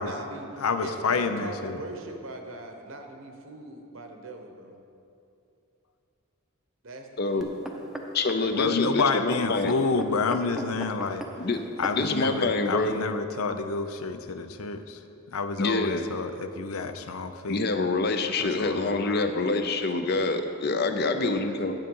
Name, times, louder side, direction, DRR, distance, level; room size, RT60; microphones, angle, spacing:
voice 1, 0.0-4.8 6.8-7.5 21.0-21.6, right 2 dB, 70° right, 4 dB, 1.0 m, -41 dB
voice 2, 0.6-1.8 8.5-11.2 11.8-15.0 15.3-17.6 18.4-19.3, left 4 dB, 90° left, 9 dB, 0.6 m, -29 dB
voice 3, 7.2-7.5 8.1-9.8 11.4-11.6 12.0-13.0 15.6-16.0 17.5-21.7, left 3 dB, 50° left, 7 dB, 0.6 m, -26 dB
sound 1, 7.4-12.3 13.0-13.1, equal, ahead, 0.6 m, -38 dB
9.2 x 7.5 x 5.4 m, 2.7 s
head